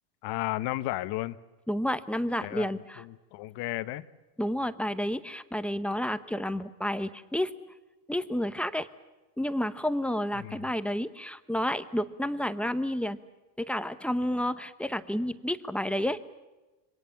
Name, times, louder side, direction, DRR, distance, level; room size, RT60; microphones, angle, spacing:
voice 1, 0.2-1.4 2.4-4.0 10.4-10.7, left 17 dB, 55° left, 14 dB, 1.3 m, -34 dB
voice 2, 1.7-3.0 4.4-7.5 8.1-8.9 9.4-13.2 13.6-16.2, equal, ahead, 11 dB, 0.9 m, -30 dB
27.0 x 24.0 x 7.1 m, 1.1 s
supercardioid pair, 135°, 48 cm